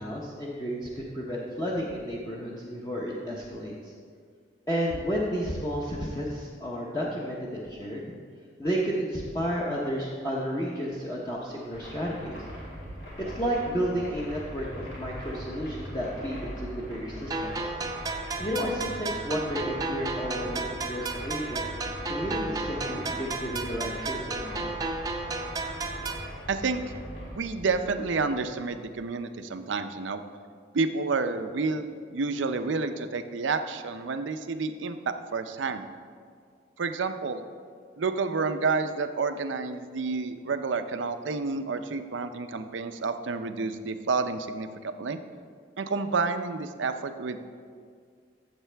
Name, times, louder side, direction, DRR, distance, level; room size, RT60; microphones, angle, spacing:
voice 1, 0.0-3.9 4.7-8.1 8.6-12.4 13.2-17.5 18.4-21.6 22.1-25.0, equal, 20° left, -5 dB, 0.8 m, -32 dB
sound 1, 11.7-29.0, equal, 70° left, 2.8 m, -41 dB
sound 2, 17.3-26.3, right 3 dB, 20° right, 0.6 m, -33 dB
voice 2, 26.5-26.9 27.3-30.2 30.7-35.9 36.8-37.4 38.0-45.2 45.8-47.4, right 4 dB, 90° right, 9 dB, 0.6 m, -29 dB
13.5 x 7.4 x 3.4 m, 2.1 s
head